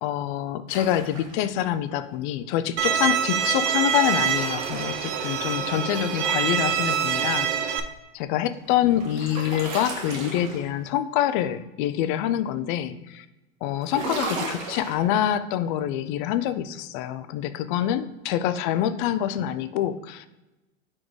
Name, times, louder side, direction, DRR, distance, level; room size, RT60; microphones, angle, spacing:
voice 1, 0.0-7.8 8.1-13.3 13.6-20.3, left 11 dB, 40° left, 13 dB, 0.4 m, -26 dB
sound 1, 0.7-1.6 3.4-5.9 8.5-10.9 13.8-15.0, right 3 dB, 80° right, 1.9 m, -35 dB
Bowed string instrument, 2.8-7.8, right 8 dB, 40° right, 0.5 m, -25 dB
4.8 x 4.2 x 4.7 m, 1.0 s
supercardioid pair, 135°, 38 cm